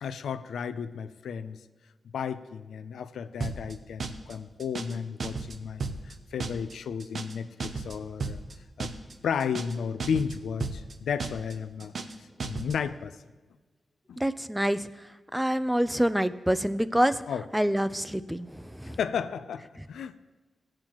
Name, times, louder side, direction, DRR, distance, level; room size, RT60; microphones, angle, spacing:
voice 1, 0.0-1.6 2.1-8.4 8.8-8.9 9.2-11.9 12.4-13.2 14.1-14.2 17.3-17.4 18.9-20.2, left 7 dB, 90° left, 11 dB, 0.5 m, -33 dB
sound 1, 3.4-3.7 4.0-4.3 4.6-5.0 5.2-5.6 5.8-6.1 6.4-6.7 7.0-7.4 7.6-8.0 8.2-8.5 8.8-9.1 9.4-9.8 10.0-10.4 10.6-10.9 11.2-11.5 11.8-12.2 12.4-12.8, right 4 dB, 65° right, 0.8 m, -34 dB
voice 2, 14.2-14.9 15.3-17.2 17.5-19.0, equal, 5° right, 12 dB, 0.5 m, -26 dB
16.0 x 8.8 x 3.0 m, 1.3 s
cardioid pair, 60°, 0 cm